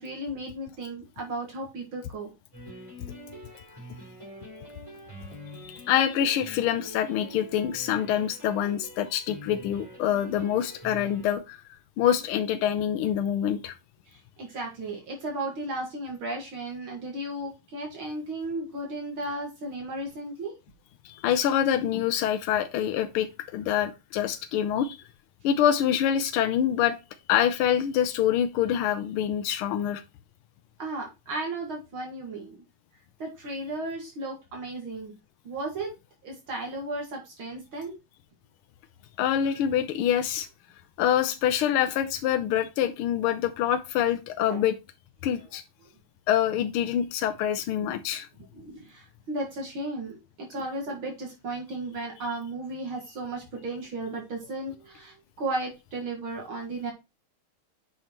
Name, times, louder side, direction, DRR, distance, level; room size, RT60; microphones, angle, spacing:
voice 1, 0.0-2.3 14.1-20.5 30.8-32.6 33.2-35.1 35.4-35.9 36.2-37.9 44.5-44.6 48.5-56.9, right 2 dB, 70° right, 0 dB, 2.7 m, -35 dB
sound 1, 2.5-11.4, equal, 15° right, 3.0 m, -45 dB
voice 2, 5.5-13.7 21.0-25.0 25.4-27.0 27.3-30.0 39.2-40.5 41.0-44.7 45.2-45.6 46.3-48.3, left 10 dB, 80° left, 8 dB, 1.5 m, -26 dB
8.8 x 5.8 x 3.0 m, 0.26 s
omnidirectional pair, 2.4 m